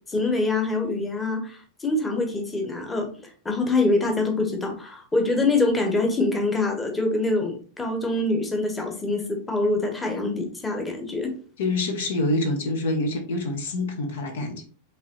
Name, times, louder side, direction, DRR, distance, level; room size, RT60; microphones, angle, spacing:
voice 1, 0.1-3.1 3.4-11.3, left 2 dB, 10° left, 3 dB, 1.0 m, -25 dB
voice 2, 11.6-14.6, left 2 dB, 60° left, 5 dB, 0.8 m, -26 dB
5.3 x 3.1 x 3.0 m, 0.41 s
figure-of-eight pair, 90°, 0 cm